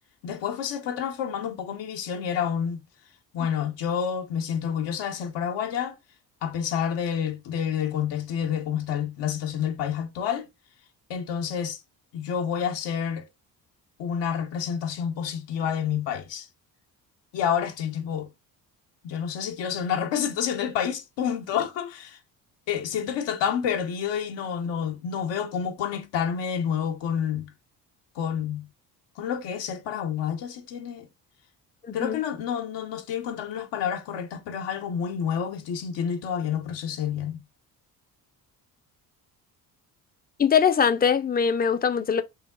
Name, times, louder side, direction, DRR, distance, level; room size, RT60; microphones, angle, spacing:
voice 1, 0.2-2.8 3.3-6.0 6.4-10.5 11.1-11.8 12.1-13.3 14.0-16.5 17.3-18.3 19.0-22.2 22.7-27.5 28.1-28.7 29.2-31.1 31.9-37.4, left 8 dB, 75° left, 0.9 m, -29 dB
voice 2, 31.9-32.2 40.4-42.2, left 7 dB, 20° left, 0.5 m, -22 dB
4.9 x 2.8 x 2.2 m
supercardioid pair, 65°, 43 cm